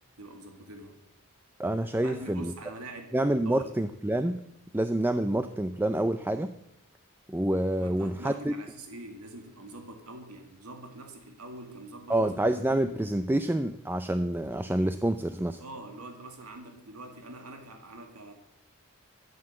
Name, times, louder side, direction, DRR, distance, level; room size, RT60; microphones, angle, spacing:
voice 1, 0.2-1.0 2.0-3.2 3.5-3.7 7.8-12.4 15.6-18.3, right 2 dB, 90° right, 5 dB, 2.2 m, -44 dB
voice 2, 1.6-2.5 3.1-4.4 4.7-6.5 7.3-8.5 12.1-15.6, right 1 dB, 10° right, 10 dB, 0.5 m, -27 dB
12.0 x 9.5 x 7.7 m, 0.81 s
head